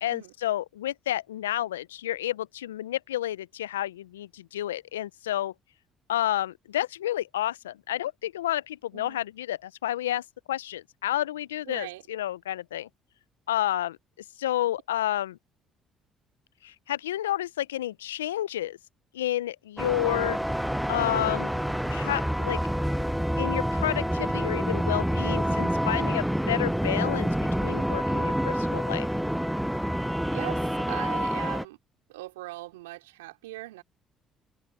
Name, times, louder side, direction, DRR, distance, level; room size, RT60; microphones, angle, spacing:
voice 1, 0.0-5.5 6.1-12.9 13.5-14.0 14.4-15.4 16.6-18.8 19.1-20.4 20.9-21.5 21.9-22.6 23.4-27.3 27.6-29.1, left 13 dB, 85° left, 0.5 m, -30 dB
voice 2, 11.7-12.0 25.5-25.9 30.3-31.8 32.1-33.8, right 19 dB, 80° right, 3.9 m, -40 dB
sound 1, 19.8-31.6, equal, ahead, 0.6 m, -27 dB
open air
hypercardioid pair, 50°, 0 cm